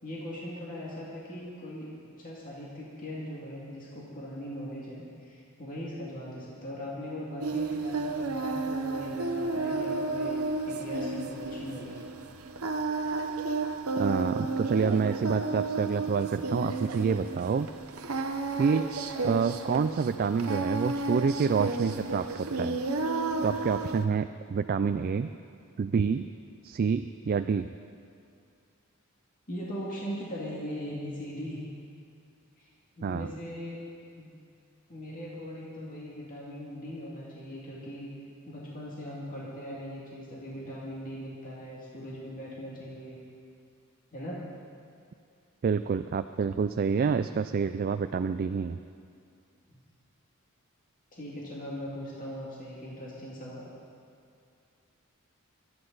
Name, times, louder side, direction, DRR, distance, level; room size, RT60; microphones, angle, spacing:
voice 1, 0.0-1.9 2.2-10.4 10.7-12.0 29.5-31.6 32.6-32.7 33.0-33.8 34.2-34.3 34.9-38.1 38.4-43.2 44.1-44.4 49.7-49.8 51.1-53.7, equal, 40° left, -6 dB, 2.3 m, -40 dB
Singing, 7.4-24.1, right 3 dB, 85° right, 0.9 m, -32 dB
voice 2, 14.0-17.7 18.6-18.9 19.2-22.8 23.4-25.3 25.8-26.3 26.6-27.7 33.0-33.3 45.6-48.8, right 5 dB, 45° right, 10 dB, 0.3 m, -28 dB
24.0 x 9.7 x 4.0 m, 2.4 s
head